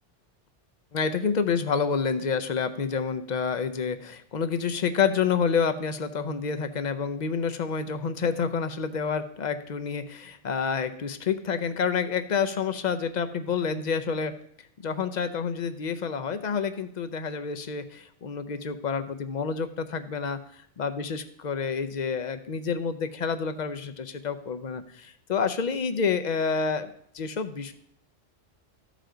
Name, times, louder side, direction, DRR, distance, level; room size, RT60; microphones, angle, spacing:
voice 1, 0.9-14.3 14.8-20.4 20.8-26.9 27.1-27.7, left 6 dB, 50° left, 10 dB, 0.6 m, -28 dB
14.0 x 5.0 x 3.8 m, 0.68 s
omnidirectional pair, 1.2 m